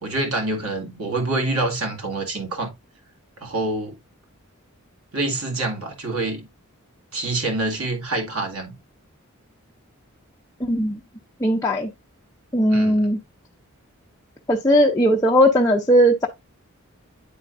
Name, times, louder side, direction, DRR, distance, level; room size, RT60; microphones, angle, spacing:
voice 1, 0.0-2.7 3.4-4.0 5.1-6.5 7.1-8.7 12.7-13.1, right 2 dB, 80° right, 2.0 m, -26 dB
voice 2, 10.6-11.0 11.4-11.9 12.5-13.2 14.5-16.3, equal, 15° left, 0.6 m, -18 dB
9.8 x 4.4 x 2.5 m
head